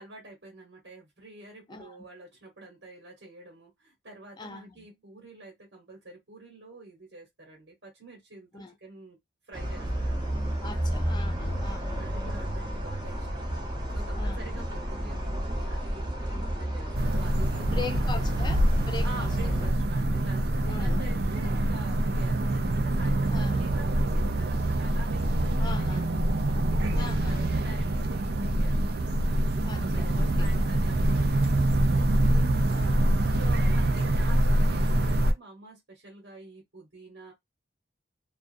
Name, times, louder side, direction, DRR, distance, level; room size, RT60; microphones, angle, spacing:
voice 1, 0.0-9.2 9.5-10.4 12.0-13.4 13.9-18.2 19.0-26.1 26.7-29.0 29.7-32.5 33.4-37.3, right 2 dB, 90° right, 1.2 m, -47 dB
voice 2, 4.4-4.9 8.5-8.7 10.2-12.1 14.1-14.6 16.5-16.6 17.6-19.7 20.7-21.5 23.3-23.7 25.6-26.1 26.9-27.5 29.6-30.5 32.7-33.3, left 4 dB, 25° left, 0.5 m, -41 dB
sound 1, 9.5-19.7, equal, 25° right, 0.8 m, -31 dB
sound 2, 16.9-35.3, right 1 dB, 60° right, 0.5 m, -25 dB
2.4 x 2.3 x 2.5 m
head